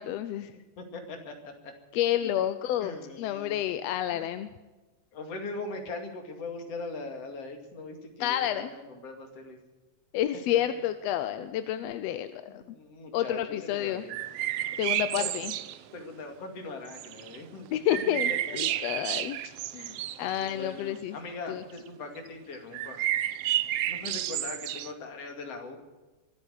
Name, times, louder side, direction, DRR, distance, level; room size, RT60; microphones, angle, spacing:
voice 1, 0.0-0.5 1.9-4.5 8.2-8.7 10.1-12.6 13.1-14.0 14.8-15.5 17.7-19.9 20.2-21.2 21.5-21.6, left 11 dB, 75° left, 11 dB, 1.7 m, -30 dB
voice 2, 0.5-1.7 2.2-2.4 2.8-3.8 4.1-4.3 5.1-9.6 10.5-10.6 11.8-11.9 12.5-14.2 15.2-15.3 15.9-18.0 18.5-18.8 19.7-20.0 20.4-23.0 23.9-25.8, left 3 dB, 55° left, 4 dB, 3.3 m, -41 dB
sound 1, 14.1-15.8 16.9-17.4 17.9-21.0 21.8-21.9 22.2-22.3 22.5-24.9, right 13 dB, 75° right, 1.5 m, -31 dB
23.5 x 8.9 x 6.4 m, 1.2 s
omnidirectional pair, 3.3 m